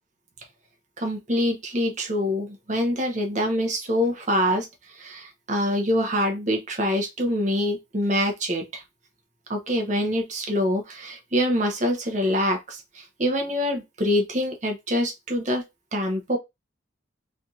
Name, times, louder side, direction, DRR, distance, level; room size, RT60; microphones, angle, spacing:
voice 1, 1.0-8.8 9.5-15.6 15.9-16.4, equal, 35° right, 0.8 m, -25 dB
3.3 x 2.8 x 2.4 m
head